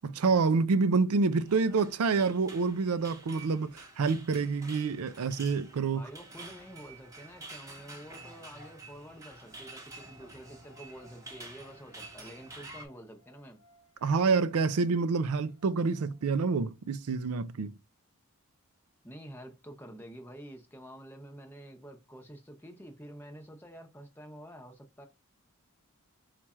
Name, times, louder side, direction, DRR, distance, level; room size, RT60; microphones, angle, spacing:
voice 1, 0.0-6.0 14.0-17.7, right 4 dB, 85° right, 0.5 m, -27 dB
sound 1, 1.3-12.9, right 2 dB, 15° right, 1.0 m, -49 dB
voice 2, 5.9-13.6 19.0-25.1, equal, 10° left, 0.8 m, -48 dB
sound 2, 9.4-16.5, right 1 dB, 85° left, 0.8 m, -64 dB
4.6 x 2.4 x 4.2 m
head